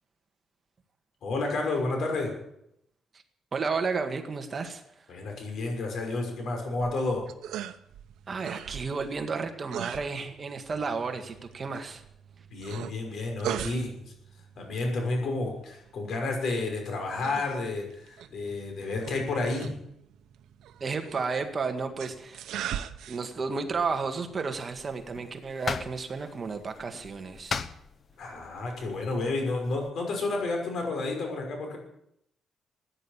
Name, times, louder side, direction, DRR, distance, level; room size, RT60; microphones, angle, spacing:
voice 1, 1.2-2.3 5.1-7.2 12.5-14.1 14.5-19.7 28.2-31.8, left 2 dB, 65° left, 3 dB, 6.0 m, -31 dB
voice 2, 3.5-4.8 8.3-12.0 20.8-22.6 23.1-27.6, right 4 dB, 35° right, 6 dB, 1.8 m, -32 dB
sound 1, 6.7-25.4, right 10 dB, 90° right, 0.9 m, -41 dB
sound 2, 24.5-29.9, left 5 dB, 40° left, 1.0 m, -39 dB
16.0 x 10.0 x 8.8 m, 0.77 s
cardioid pair, 120°, 0 cm